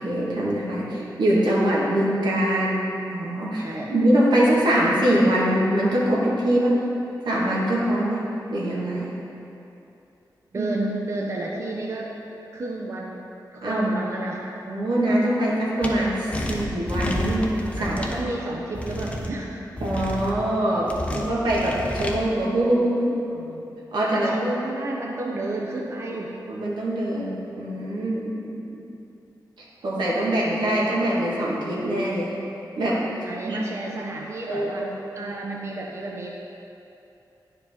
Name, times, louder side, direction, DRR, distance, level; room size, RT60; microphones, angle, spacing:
voice 1, 0.0-2.8 3.1-6.8 7.2-8.2 8.5-9.1 10.5-10.7 13.6-13.9 14.7-17.5 17.8-18.0 19.8-23.7 23.9-24.5 26.5-28.8 29.8-32.3 32.8-33.0 33.4-33.6 34.5-34.9, right 1 dB, 85° right, -5 dB, 1.5 m, -23 dB
voice 2, 10.5-12.1 12.5-13.3 13.5-14.4 17.8-19.6 24.1-26.3 33.3-34.9 35.1-36.3, right 2 dB, 40° right, -2 dB, 0.6 m, -31 dB
sound 1, 15.8-15.9 16.3-18.2 18.7-19.3 19.8-20.3 20.9-22.2, left 1 dB, 15° left, 0.6 m, -30 dB
10.0 x 4.8 x 3.5 m, 2.8 s
wide cardioid pair, 125°, 8 cm